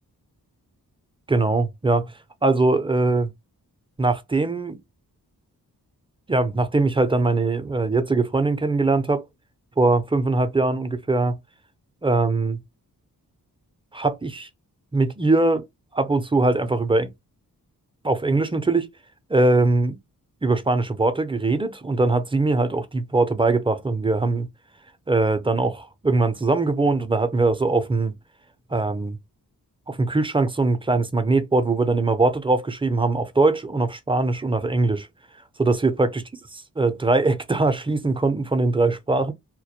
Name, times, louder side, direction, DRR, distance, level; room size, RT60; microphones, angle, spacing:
voice 1, 1.3-2.1 2.4-3.3 4.0-4.8 6.3-9.3 9.8-11.4 12.0-12.6 13.9-14.5 14.9-15.6 15.9-17.1 18.0-18.9 19.3-20.0 20.4-24.5 25.1-28.1 28.7-29.2 29.9-35.1 35.6-36.2 36.8-39.3, right 3 dB, 15° right, 0.4 m, -21 dB
2.1 x 2.1 x 2.8 m
cardioid pair, 50°, 38 cm